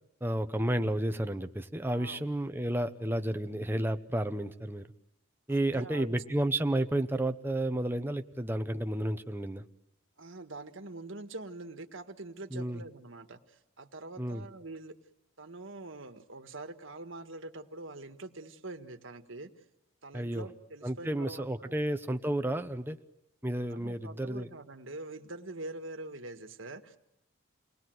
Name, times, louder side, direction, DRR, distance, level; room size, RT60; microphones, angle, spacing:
voice 1, 0.2-4.9 5.5-9.6 12.5-12.8 14.2-14.4 20.1-20.5 20.8-23.0 23.4-24.5, right 1 dB, 10° right, 7 dB, 0.9 m, -31 dB
voice 2, 1.9-2.3 5.5-6.2 10.2-14.9 15.4-19.5 20.0-21.8 23.7-27.0, right 2 dB, 65° right, 7 dB, 1.7 m, -44 dB
29.5 x 20.5 x 7.9 m, 0.92 s
head